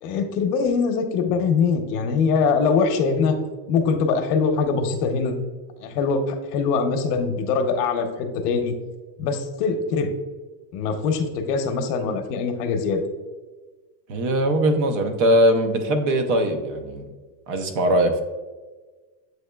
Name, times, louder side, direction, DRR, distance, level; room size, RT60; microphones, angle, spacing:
voice 1, 0.0-3.4 3.7-5.4 5.8-8.7 9.2-10.1 10.7-13.0, left 5 dB, 65° left, 6 dB, 0.8 m, -23 dB
voice 2, 14.1-17.1 17.5-18.2, right 1 dB, 50° right, 6 dB, 0.6 m, -21 dB
7.8 x 2.9 x 2.2 m, 1.3 s
supercardioid pair, 170°, 50 cm